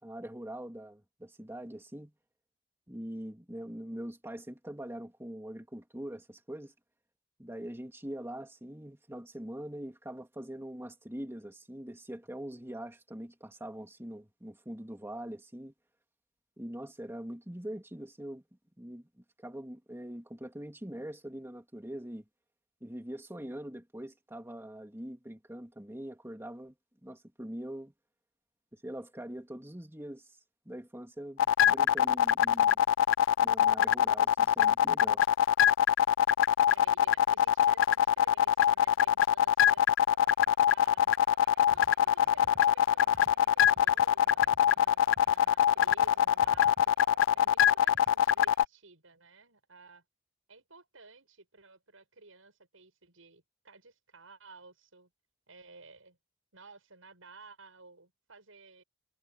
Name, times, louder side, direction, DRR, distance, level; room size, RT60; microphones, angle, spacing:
voice 1, 0.0-2.1 2.9-6.7 7.4-15.7 16.6-18.4 18.8-22.2 22.8-26.7 27.0-27.9 28.7-30.3 30.6-32.8 33.4-35.2, right 1 dB, 10° right, 2.7 m, -43 dB
sound 1, 31.4-48.7, left 9 dB, 70° left, 0.3 m, -23 dB
voice 2, 36.7-39.9 40.7-41.2 41.6-47.0 47.3-50.0 50.5-55.1 55.5-56.2 56.5-58.8, right 3 dB, 90° right, 7.2 m, -55 dB
sound 2, 39.8-48.7, right 1 dB, 55° right, 6.7 m, -55 dB
head